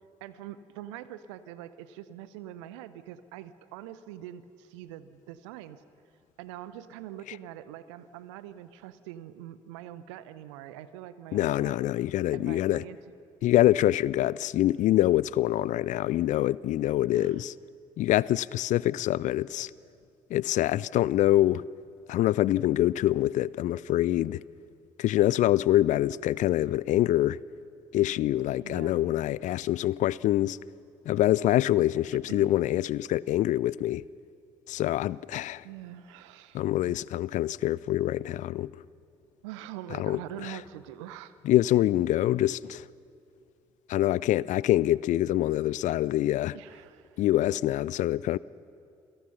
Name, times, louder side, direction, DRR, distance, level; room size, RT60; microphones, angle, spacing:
voice 1, 0.2-5.8 6.4-11.8 12.3-13.0 17.1-17.4 28.6-29.2 32.3-32.6 35.6-37.0 39.4-41.3 46.5-47.2, right 12 dB, 75° right, 0.8 m, -44 dB
voice 2, 11.3-12.8 13.4-17.5 18.0-19.7 20.3-21.6 22.1-24.4 25.0-27.4 27.9-30.6 31.1-34.0 34.7-35.6 36.5-38.7 39.9-40.2 40.5-40.6 41.4-42.9 43.9-46.6 47.2-48.4, left 14 dB, 50° left, 0.4 m, -25 dB
27.5 x 17.5 x 5.7 m
figure-of-eight pair, 45°, 16 cm